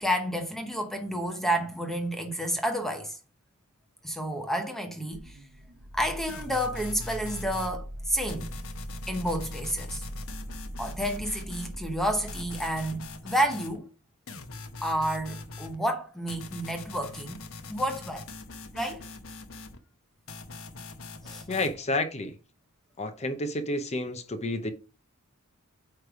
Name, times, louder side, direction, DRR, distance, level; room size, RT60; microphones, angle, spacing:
voice 1, 0.0-3.1 4.0-5.4 5.9-8.5 9.1-10.0 10.8-13.9 14.8-17.4 17.7-18.2 18.7-19.0 21.2-21.4, equal, ahead, 0.9 m, -30 dB
sound 1, 5.1-13.3, equal, 65° right, 1.1 m, -40 dB
sound 2, 6.3-7.8 8.3-11.8 12.3-13.8 14.3-15.8 16.3-19.8 20.3-21.8, left 3 dB, 65° left, 1.0 m, -43 dB
voice 2, 21.5-22.3 23.0-24.7, left 2 dB, 30° left, 0.7 m, -30 dB
9.0 x 3.3 x 4.8 m
head